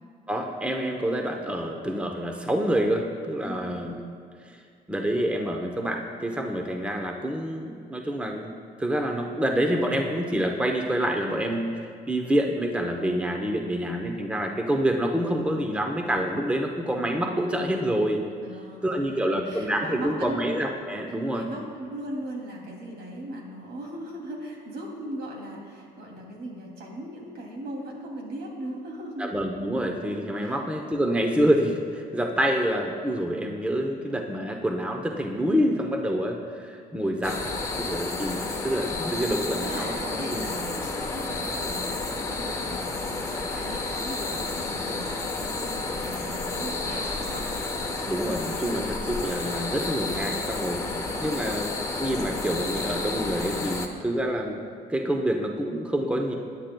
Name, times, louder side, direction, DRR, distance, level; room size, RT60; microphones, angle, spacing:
voice 1, 0.3-4.0 4.4-4.6 4.9-8.5 8.8-18.2 18.8-21.5 29.2-37.4 37.7-40.5 48.0-54.6 54.9-56.3, equal, 5° right, 2 dB, 0.8 m, -27 dB
voice 2, 3.4-3.8 18.4-20.4 21.3-29.3 30.4-30.6 30.9-31.1 39.6-47.5 50.9-51.6, right 1 dB, 75° right, -1 dB, 2.7 m, -39 dB
sound 1, 37.2-53.9, left 3 dB, 20° left, 1.0 m, -31 dB
18.0 x 10.5 x 2.3 m, 2.2 s
cardioid pair, 110°, 17 cm